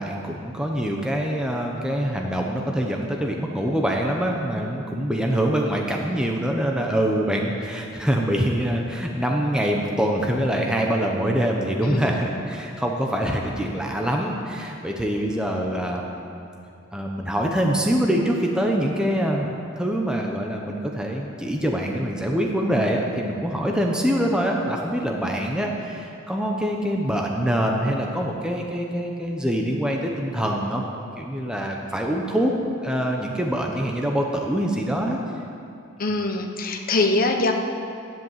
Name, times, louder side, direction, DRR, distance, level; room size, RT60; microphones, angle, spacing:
voice 1, 0.0-16.1 16.9-30.8 31.2-32.5 32.8-35.2, equal, 5° right, 0 dB, 1.0 m, -24 dB
voice 2, 11.8-12.4 36.0-37.5, left 2 dB, 45° left, 3 dB, 1.2 m, -23 dB
13.0 x 11.0 x 7.5 m, 2.6 s
head